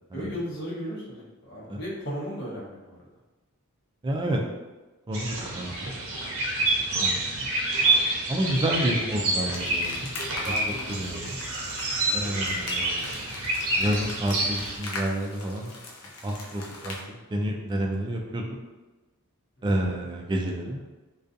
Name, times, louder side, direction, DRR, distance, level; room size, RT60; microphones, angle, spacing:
voice 1, 0.1-3.0 6.7-6.8 10.4-10.9 12.0-12.4, equal, 50° left, -7 dB, 0.9 m, -36 dB
voice 2, 4.0-4.4 5.1-5.9 7.0-7.2 8.3-10.1 10.4-11.4 12.1-13.1 13.8-15.7 16.2-18.6 19.6-20.8, right 1 dB, 20° right, 1 dB, 0.3 m, -29 dB
sound 1, 5.1-14.8, right 2 dB, 65° right, 0.6 m, -28 dB
sound 2, 9.5-17.0, left 2 dB, 75° left, 0.5 m, -41 dB
2.5 x 2.3 x 2.5 m, 1.2 s
head